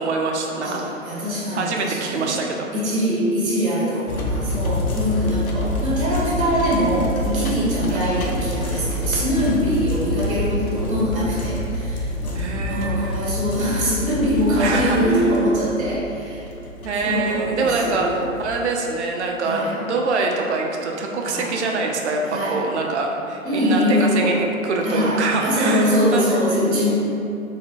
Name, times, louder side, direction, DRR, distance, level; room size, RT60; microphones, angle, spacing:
voice 1, 0.0-0.9 1.5-2.7 7.9-8.3 12.4-13.2 14.6-15.2 16.8-26.4, right 3 dB, 55° right, 1 dB, 0.5 m, -25 dB
voice 2, 0.6-2.3 2.7-16.4 17.0-18.4 19.4-19.8 21.3-21.5 22.3-22.6 23.4-24.3 24.8-26.9, equal, 75° right, -6 dB, 1.0 m, -23 dB
sound 1, 4.1-18.7, left 1 dB, 85° left, 0.6 m, -27 dB
3.9 x 2.1 x 2.4 m, 2.6 s
figure-of-eight pair, 130°, 41 cm